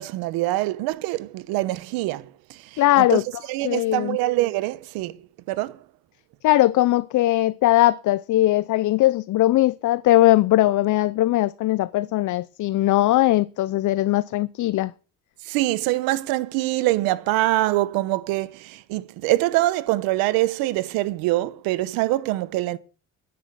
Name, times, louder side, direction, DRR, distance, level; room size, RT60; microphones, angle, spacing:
voice 1, 0.0-3.2 3.5-5.2 5.5-5.8 15.5-22.8, right 17 dB, 90° right, 1.0 m, -24 dB
voice 2, 2.8-3.2 3.6-4.2 6.4-14.9, left 15 dB, 60° left, 0.6 m, -20 dB
10.0 x 8.5 x 7.7 m
supercardioid pair, 80°, 34 cm